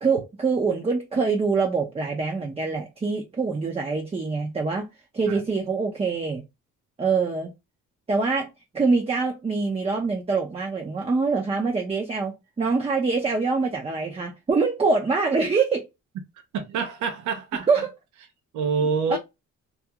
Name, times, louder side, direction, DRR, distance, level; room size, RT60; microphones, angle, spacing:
voice 1, 0.0-4.9 5.1-6.4 7.0-7.5 8.1-8.5 8.7-15.9 17.7-17.9 19.1-19.2, right 4 dB, 20° right, 0.5 m, -24 dB
voice 2, 16.5-17.7 18.5-19.2, right 5 dB, 75° right, 0.5 m, -26 dB
2.4 x 2.2 x 2.8 m
cardioid pair, 90°, 30 cm